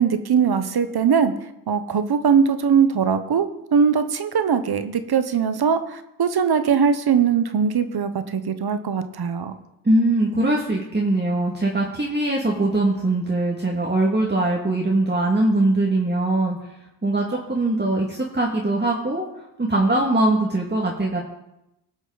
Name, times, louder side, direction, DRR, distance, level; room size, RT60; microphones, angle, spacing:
voice 1, 0.0-1.3 1.7-9.5, right 6 dB, 65° right, 10 dB, 1.0 m, -21 dB
voice 2, 9.8-16.6 17.0-19.2 19.6-21.2, right 2 dB, 25° right, -3 dB, 2.1 m, -21 dB
18.0 x 6.2 x 4.0 m, 0.88 s
cardioid pair, 45°, 40 cm